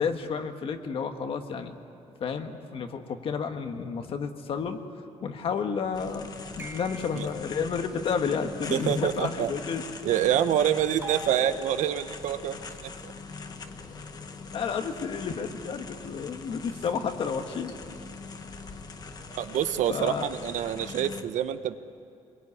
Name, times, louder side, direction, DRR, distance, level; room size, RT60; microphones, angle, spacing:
voice 1, 0.0-1.7 2.2-4.8 5.2-6.3 6.6-9.8 14.5-17.7 19.9-20.3, left 6 dB, 45° left, 6 dB, 1.5 m, -31 dB
sound 1, 5.9-21.2, left 4 dB, 30° left, 1.3 m, -42 dB
sound 2, 6.6-7.5 11.0-12.2, right 3 dB, 20° right, 1.3 m, -42 dB
voice 2, 8.7-9.5 10.0-13.1 19.3-21.8, right 10 dB, 75° right, 11 dB, 1.0 m, -27 dB
25.0 x 22.5 x 9.8 m, 2.6 s
cardioid pair, 175°, 13 cm